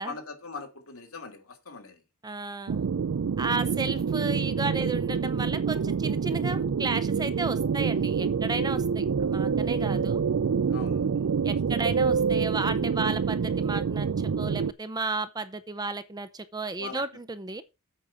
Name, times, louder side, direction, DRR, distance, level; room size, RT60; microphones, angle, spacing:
voice 1, 0.0-2.0 10.7-11.1 16.8-17.0, left 4 dB, 70° left, 2.4 m, -41 dB
voice 2, 2.2-2.9 3.4-10.2 11.4-17.6, right 3 dB, 20° right, 0.6 m, -33 dB
sound 1, 2.7-14.7, right 6 dB, 65° right, 0.4 m, -27 dB
8.4 x 5.1 x 7.1 m
head